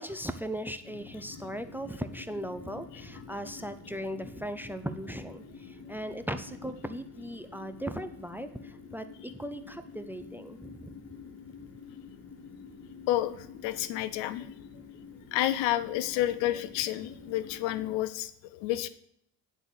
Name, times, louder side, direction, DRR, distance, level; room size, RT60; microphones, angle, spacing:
voice 1, 0.0-10.9, equal, 5° right, 9 dB, 0.6 m, -38 dB
sound 1, 0.8-18.0, left 5 dB, 30° left, 2.7 m, -48 dB
voice 2, 13.1-14.5 15.3-18.9, left 14 dB, 80° left, 15 dB, 0.7 m, -30 dB
10.0 x 4.2 x 7.1 m, 0.70 s
supercardioid pair, 85°, 44 cm